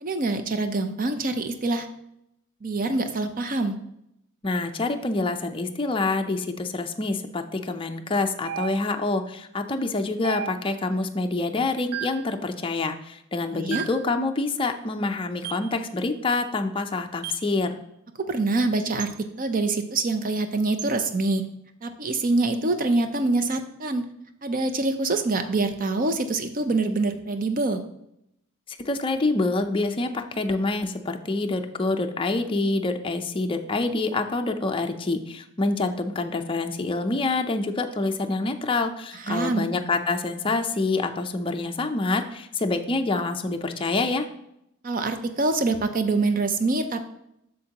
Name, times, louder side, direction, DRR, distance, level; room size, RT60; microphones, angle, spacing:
voice 1, 0.0-1.9 2.6-3.8 13.5-13.9 18.2-19.1 19.4-21.4 21.8-24.1 24.4-27.8 39.3-39.7 44.8-47.0, right 3 dB, 40° right, 8 dB, 0.6 m, -25 dB
voice 2, 4.4-17.8 28.8-44.3, left 3 dB, 25° left, 5 dB, 0.5 m, -26 dB
sound 1, 8.5-9.1 10.2-10.9 11.9-12.3 13.7-14.1 15.4-15.7 17.2-17.5 19.0-19.2 20.8-21.0, right 11 dB, 85° right, 0.3 m, -35 dB
8.1 x 6.4 x 2.9 m, 0.79 s
head